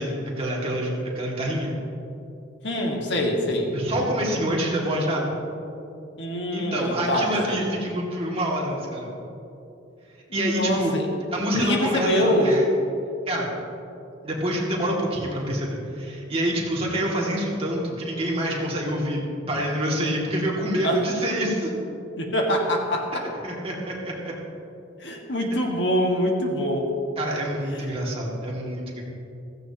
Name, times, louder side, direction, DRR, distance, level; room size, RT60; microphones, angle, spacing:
voice 1, 0.0-1.7 3.7-5.3 6.5-9.1 10.3-11.0 11.3-12.6 13.3-13.5 14.2-19.2 19.5-21.7 23.1-24.3 27.2-29.0, right 1 dB, 30° right, -3 dB, 2.3 m, -26 dB
voice 2, 2.6-3.8 6.2-7.7 10.3-11.0 11.5-12.6 20.8-21.0 22.2-23.3 25.0-26.9 27.7-27.8, equal, 60° left, 1 dB, 1.7 m, -24 dB
16.0 x 15.0 x 2.9 m, 2.8 s
head